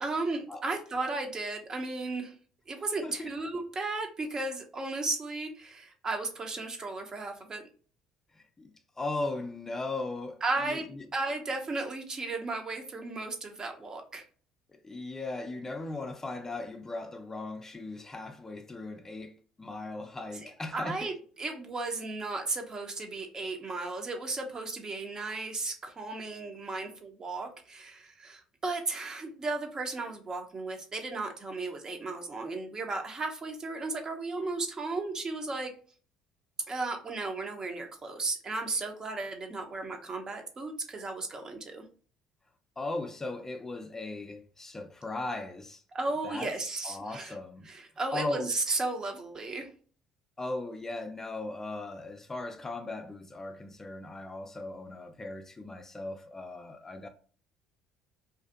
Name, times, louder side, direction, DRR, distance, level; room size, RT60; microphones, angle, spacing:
voice 1, 0.0-2.3 2.7-7.6 10.4-10.9 11.1-14.2 20.7-35.7 36.7-41.8 45.9-47.3 47.6-49.7, right 3 dB, 35° right, 0.6 m, -35 dB
voice 2, 3.0-3.3 8.3-11.1 14.7-21.1 42.8-45.8 46.2-46.6 46.8-47.7 48.1-48.5 50.4-57.1, left 2 dB, 20° left, 0.4 m, -38 dB
2.5 x 2.4 x 2.4 m
hypercardioid pair, 65°, 2 cm